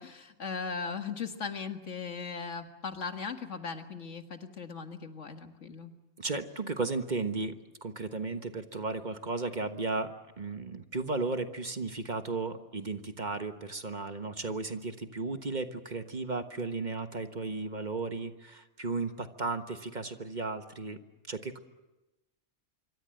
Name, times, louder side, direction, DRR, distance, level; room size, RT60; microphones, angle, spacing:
voice 1, 0.0-5.9, left 5 dB, 80° left, 7 dB, 2.1 m, -38 dB
voice 2, 6.2-7.5 7.8-10.1 10.4-21.0 21.3-21.6, right 3 dB, 40° right, 8 dB, 1.4 m, -34 dB
26.0 x 24.5 x 7.9 m, 1.0 s
omnidirectional pair, 1.3 m